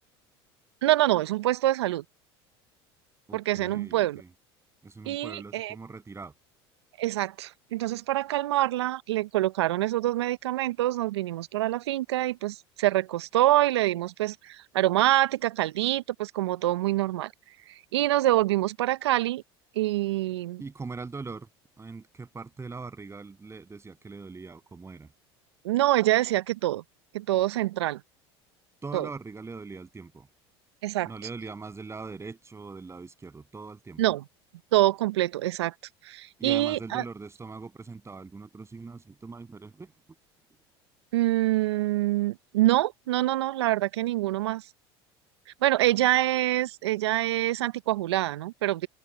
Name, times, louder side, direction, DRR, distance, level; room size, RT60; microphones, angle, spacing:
voice 1, 0.8-2.0 3.3-4.2 5.1-5.7 7.0-17.3 17.7-19.4 19.8-20.6 25.6-26.8 27.1-28.0 28.9-29.1 30.8-31.1 34.0-34.2 34.7-35.7 36.0-37.0 41.1-44.7 45.6-48.9, right 15 dB, 80° right, 0.8 m, -25 dB
voice 2, 3.3-4.3 4.8-6.3 20.6-21.5 21.8-25.1 28.8-30.3 31.0-34.0 36.4-39.9, right 4 dB, 20° right, 7.4 m, -41 dB
open air
hypercardioid pair, 80°, 14 cm